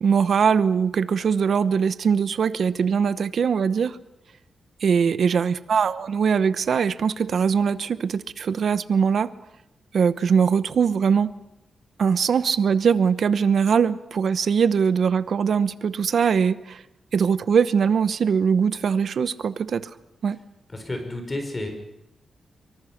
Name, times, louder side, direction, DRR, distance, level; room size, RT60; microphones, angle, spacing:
voice 1, 0.0-4.0 4.8-9.3 9.9-11.3 12.0-16.8 17.1-19.9 20.2-20.4, right 6 dB, 65° right, 14 dB, 0.9 m, -21 dB
voice 2, 20.7-21.7, left 1 dB, 25° left, 5 dB, 4.5 m, -31 dB
24.0 x 24.0 x 5.9 m, 0.91 s
wide cardioid pair, 115°, 0 cm